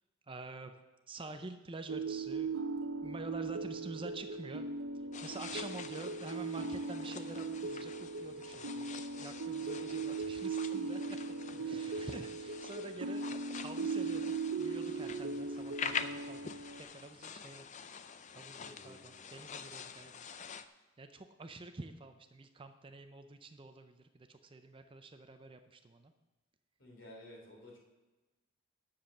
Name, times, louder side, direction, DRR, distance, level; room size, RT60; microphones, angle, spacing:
voice 1, 0.3-0.7 1.1-2.5 3.0-4.7 5.2-11.0 11.7-13.3 13.5-16.5 16.8-17.7 18.3-19.0 19.3-20.2 21.0-24.0 24.3-26.1, right 2 dB, 25° right, 7 dB, 0.5 m, -48 dB
sound 1, 1.9-16.8, right 4 dB, 65° right, 0.7 m, -39 dB
sound 2, 5.1-20.7, left 7 dB, 35° left, 0.4 m, -46 dB
voice 2, 11.3-12.0 18.6-19.2 26.8-27.8, left 1 dB, 60° left, -2 dB, 3.5 m, -54 dB
10.0 x 7.1 x 6.5 m, 1.1 s
head